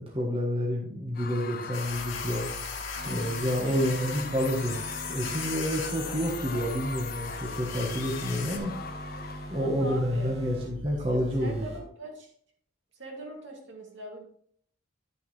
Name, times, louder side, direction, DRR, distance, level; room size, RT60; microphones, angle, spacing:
voice 1, 0.0-2.5 3.0-4.8 5.1-8.7 9.5-11.7, equal, 25° right, -2 dB, 1.2 m, -29 dB
Screaming / Cheering / Crowd, 1.1-9.7, left 5 dB, 45° left, 0.5 m, -41 dB
sound 1, 1.7-8.6, left 6 dB, 75° left, 1.8 m, -39 dB
sound 2, 1.8-11.8, right 1 dB, 80° right, 2.4 m, -42 dB
voice 2, 3.6-4.0 6.0-6.3 9.5-10.3 11.0-12.3 12.9-14.2, right 1 dB, 65° right, 0 dB, 2.4 m, -42 dB
10.5 x 6.8 x 3.2 m, 0.62 s
head